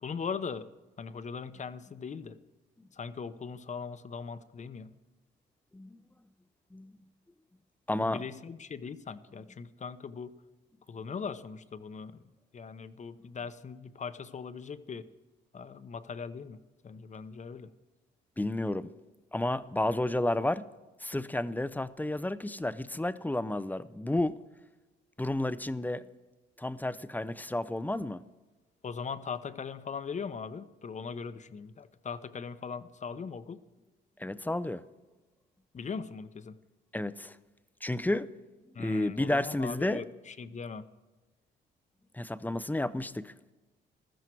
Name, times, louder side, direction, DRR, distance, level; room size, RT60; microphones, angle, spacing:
voice 1, 0.0-0.7 1.0-2.4 2.9-4.9 8.0-10.3 10.9-12.2 12.5-15.1 15.5-17.7 28.8-33.6 35.7-36.6 38.7-40.8, left 5 dB, 35° left, 0.8 m, -40 dB
voice 2, 7.9-8.2 13.2-13.3 18.4-18.9 19.3-20.6 21.0-24.4 25.2-26.0 26.6-28.2 34.2-34.8 36.9-37.4 37.8-38.3 38.8-40.0 42.1-43.3, left 1 dB, 10° left, 0.5 m, -31 dB
15.5 x 13.0 x 4.6 m
cardioid pair, 90°, 20 cm